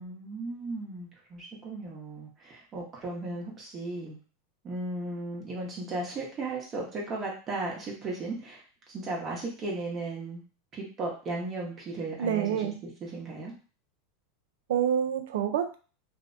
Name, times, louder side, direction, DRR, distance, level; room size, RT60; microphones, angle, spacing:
voice 1, 0.0-4.2 4.6-8.6 8.9-10.4 10.7-13.5, right 2 dB, 30° right, -3 dB, 0.8 m, -36 dB
voice 2, 12.2-12.8 14.7-15.8, right 9 dB, 80° right, 8 dB, 0.4 m, -27 dB
2.5 x 2.1 x 2.5 m, 0.36 s
supercardioid pair, 120°, 0 cm